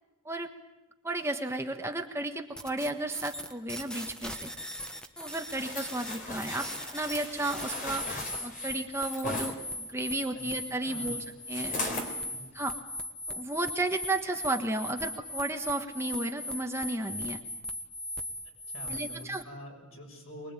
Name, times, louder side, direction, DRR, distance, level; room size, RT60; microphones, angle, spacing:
voice 1, 1.0-4.5 5.2-6.7 6.9-11.8 12.5-12.7 13.3-17.4 18.9-19.4, right 2 dB, 15° right, 4 dB, 1.4 m, -33 dB
sound 1, 2.6-19.4, left 1 dB, 5° left, 1.4 m, -39 dB
sound 2, 5.5-9.5 11.5-12.1 12.7-12.8, left 2 dB, 40° left, 3.9 m, -37 dB
voice 2, 10.8-11.2 18.7-20.5, equal, 85° left, 1 dB, 7.0 m, -45 dB
24.0 x 21.0 x 9.0 m, 1.0 s
head